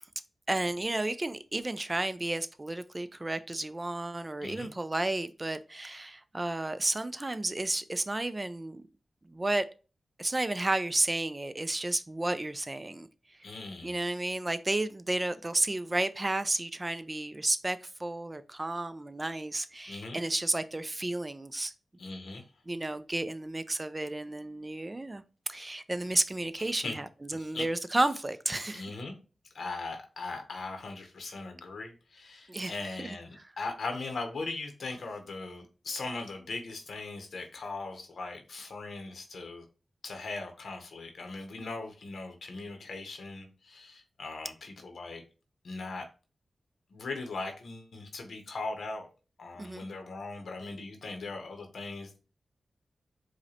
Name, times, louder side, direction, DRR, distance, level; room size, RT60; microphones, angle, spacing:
voice 1, 0.5-8.8 9.3-9.6 10.2-13.1 13.8-21.7 22.7-25.2 25.5-28.9 32.5-32.7 33.0-33.1 49.6-49.8, right 2 dB, 30° right, 0.3 m, -32 dB
voice 2, 13.4-14.0 19.9-20.2 22.0-22.4 26.6-27.0 27.4-27.6 28.7-29.1 29.5-39.6 40.0-45.2 45.6-46.1 46.9-49.1 49.4-52.2, left 3 dB, 80° left, 0.7 m, -39 dB
4.8 x 2.1 x 2.7 m
cardioid pair, 60°, 0 cm